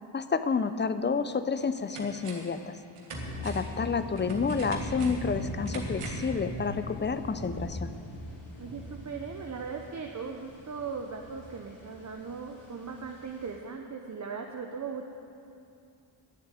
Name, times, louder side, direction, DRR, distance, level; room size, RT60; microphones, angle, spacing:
voice 1, 0.1-2.8 3.4-7.9, left 5 dB, 20° left, 12 dB, 0.5 m, -30 dB
sound 1, 1.0-1.1 1.5-2.6 3.0-6.4 6.7-6.8, right 3 dB, 85° right, 1.8 m, -45 dB
sound 2, 3.1-13.5, equal, 85° left, 3.7 m, -40 dB
voice 2, 8.6-15.1, right 5 dB, 35° right, 2 dB, 0.8 m, -39 dB
10.5 x 7.1 x 9.3 m, 2.6 s
cardioid pair, 75°, 50 cm